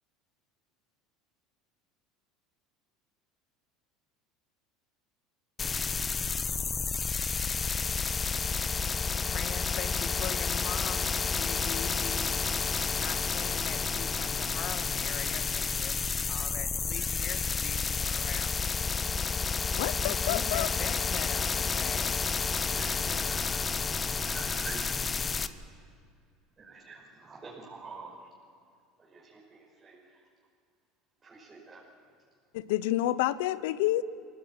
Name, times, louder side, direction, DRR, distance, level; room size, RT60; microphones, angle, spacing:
sound 1, 5.6-25.5, left 5 dB, 25° left, 0.9 m, -30 dB
voice 1, 9.3-12.3 12.9-16.0 16.3-18.6 20.0-22.1 22.9-23.5, left 9 dB, 55° left, 8 dB, 2.0 m, -42 dB
voice 2, 19.8-20.7 32.5-34.0, left 15 dB, 80° left, 17 dB, 0.8 m, -29 dB
voice 3, 22.5-23.4 23.8-25.5 26.6-28.1 29.0-30.2 31.2-31.8, right 4 dB, 25° right, -5 dB, 5.6 m, -47 dB
24.0 x 17.0 x 8.9 m, 2.1 s
supercardioid pair, 110°, 0 cm